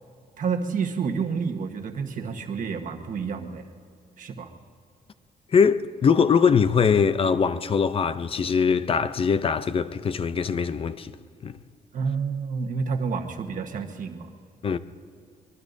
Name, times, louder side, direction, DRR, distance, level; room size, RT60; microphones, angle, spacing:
voice 1, 0.4-3.7 4.2-4.5 11.9-14.3, right 5 dB, 50° right, 1.2 m, -29 dB
voice 2, 5.5-11.1 11.4-11.6 14.6-14.8, left 6 dB, 35° left, 0.5 m, -22 dB
24.5 x 22.0 x 2.7 m
cardioid pair, 145°, 17 cm